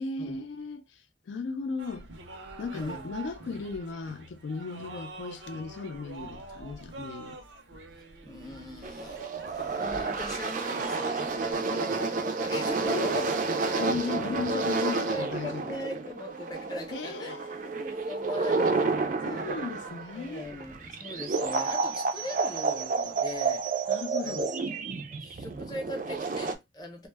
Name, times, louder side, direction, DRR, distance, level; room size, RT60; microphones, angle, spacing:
voice 1, 0.0-2.1 2.6-7.4 12.9-15.8 16.9-17.7 19.3-20.5 23.9-24.5, left 4 dB, 80° left, 0.4 m, -36 dB
sound 1, 1.8-11.5, right 3 dB, 85° right, 0.6 m, -46 dB
voice 2, 2.7-3.1 8.2-9.2 9.5-13.3 13.6-13.8 14.5-14.6 15.1-19.5 20.1-23.7 24.2-24.7 25.1-27.1, left 1 dB, 20° left, 0.6 m, -40 dB
sound 2, 8.8-26.5, right 4 dB, 45° right, 0.4 m, -30 dB
2.1 x 2.0 x 3.3 m
head